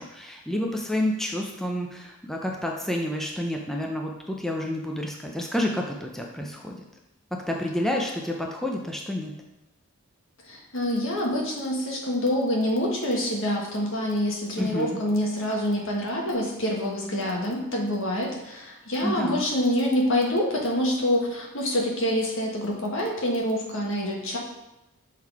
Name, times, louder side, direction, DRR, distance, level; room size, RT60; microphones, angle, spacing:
voice 1, 0.0-6.8 7.5-9.3 14.6-15.0 19.0-19.4, left 1 dB, ahead, 0 dB, 0.5 m, -29 dB
voice 2, 10.5-24.4, left 1 dB, 65° left, 0 dB, 1.3 m, -26 dB
6.4 x 3.7 x 4.6 m, 0.94 s
head